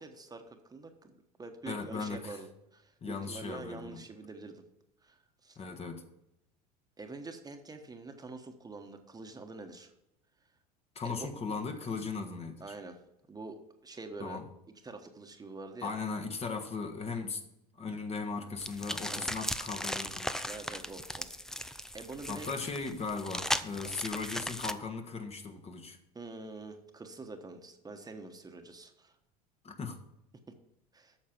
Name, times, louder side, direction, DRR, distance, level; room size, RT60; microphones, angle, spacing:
voice 1, 0.0-4.6 5.0-5.6 7.0-9.9 11.2-11.3 12.6-13.0 13.3-14.4 14.8-15.9 19.1-19.3 20.5-22.5 23.8-24.0 26.1-29.1 30.9-31.1, right 3 dB, 20° right, 5 dB, 1.2 m, -46 dB
voice 2, 1.6-2.4 3.0-4.0 5.6-6.0 10.9-12.7 14.2-14.4 15.8-17.4 17.8-20.5 22.3-26.0 29.6-30.0, left 4 dB, 30° left, 5 dB, 1.3 m, -38 dB
sound 1, 18.6-24.7, left 1 dB, ahead, 0.5 m, -37 dB
8.7 x 6.4 x 6.0 m, 0.84 s
hypercardioid pair, 90°, 21 cm